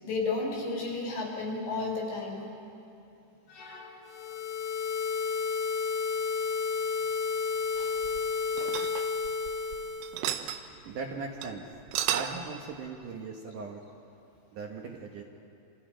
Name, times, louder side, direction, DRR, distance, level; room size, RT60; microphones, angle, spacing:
voice 1, 0.0-2.5 3.5-3.9 7.8-7.9, left 3 dB, 90° left, -1 dB, 7.0 m, -33 dB
sound 1, 4.1-10.2, left 5 dB, 75° left, 2.2 m, -31 dB
sound 2, 7.8-9.8 10.0-10.6 11.0-11.1 11.4-11.5 11.8-12.5, right 11 dB, 90° right, 3.2 m, -33 dB
voice 2, 10.8-11.7 12.1-13.8 14.5-15.2, right 4 dB, 65° right, 0 dB, 2.3 m, -39 dB
28.0 x 26.5 x 5.1 m, 2.7 s
omnidirectional pair, 5.1 m